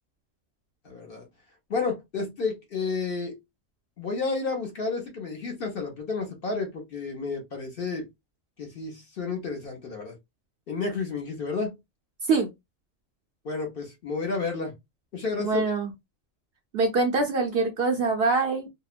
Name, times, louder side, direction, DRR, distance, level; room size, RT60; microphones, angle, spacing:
voice 1, 0.8-1.2 1.7-3.4 4.0-8.1 8.6-10.1 10.7-11.8 13.4-14.7 15.1-15.7, left 4 dB, 50° left, 0.8 m, -31 dB
voice 2, 15.4-15.9 16.7-18.7, right 4 dB, 60° right, 0.7 m, -24 dB
2.8 x 2.1 x 2.4 m
omnidirectional pair, 1.4 m